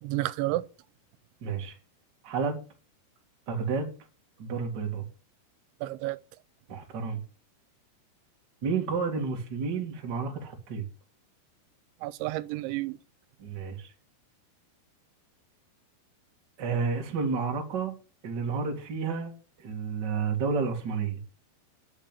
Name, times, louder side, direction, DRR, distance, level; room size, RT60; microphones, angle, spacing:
voice 1, 0.0-0.7 5.8-6.2 12.0-13.0, right 17 dB, 90° right, 3.1 m, -31 dB
voice 2, 1.4-1.8 2.2-2.6 3.5-3.9 4.4-5.0 6.7-7.2 8.6-10.9 13.4-13.9 16.6-17.9 18.2-21.2, right 5 dB, 35° right, 1.7 m, -31 dB
10.5 x 7.3 x 8.8 m
omnidirectional pair, 5.2 m